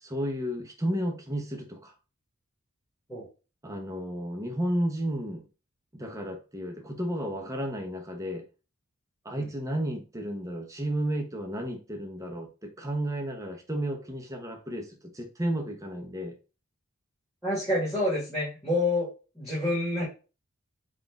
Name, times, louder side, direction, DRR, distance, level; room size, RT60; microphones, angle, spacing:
voice 1, 0.0-1.9 3.6-5.4 5.9-8.4 9.2-16.3, right 1 dB, 15° right, 3 dB, 0.7 m, -32 dB
voice 2, 17.4-19.1 19.3-20.0, left 1 dB, ahead, -9 dB, 1.5 m, -27 dB
4.1 x 2.5 x 3.4 m, 0.32 s
head